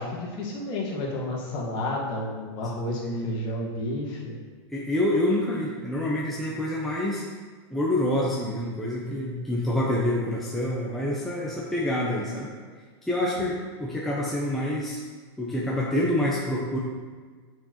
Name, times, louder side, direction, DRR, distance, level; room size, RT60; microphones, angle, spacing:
voice 1, 0.0-4.4, left 1 dB, 35° left, -3 dB, 1.4 m, -31 dB
voice 2, 3.0-3.4 4.7-7.2 7.7-12.5 13.1-15.0 15.4-16.8, left 1 dB, ahead, -5 dB, 0.6 m, -27 dB
8.4 x 4.5 x 2.9 m, 1.5 s
supercardioid pair, 155°, 14 cm